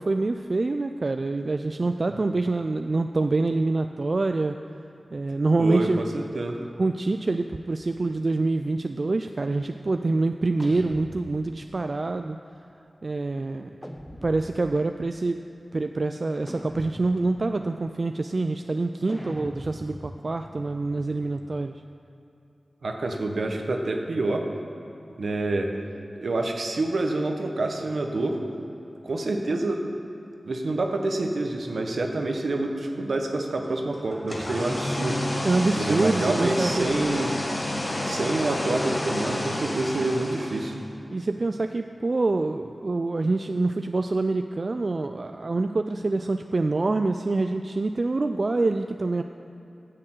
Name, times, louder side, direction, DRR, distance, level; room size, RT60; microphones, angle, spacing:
voice 1, 0.0-4.6 5.1-6.0 6.8-12.4 13.0-13.8 14.2-15.4 15.7-21.7 35.4-37.0 41.1-49.2, right 3 dB, 50° right, 7 dB, 0.3 m, -26 dB
voice 2, 5.6-6.6 22.8-24.5 25.2-25.7 26.1-28.4 29.0-29.9 30.4-35.3 35.7-37.4 38.0-40.7, right 2 dB, 75° right, 3 dB, 1.0 m, -27 dB
sound 1, 10.6-11.9 13.8-14.9 16.5-17.5 19.1-21.8, equal, 5° left, 0.7 m, -42 dB
sound 2, 34.1-40.9, left 1 dB, 30° left, 1.3 m, -30 dB
9.9 x 6.7 x 7.7 m, 2.8 s
wide cardioid pair, 65°, 0 cm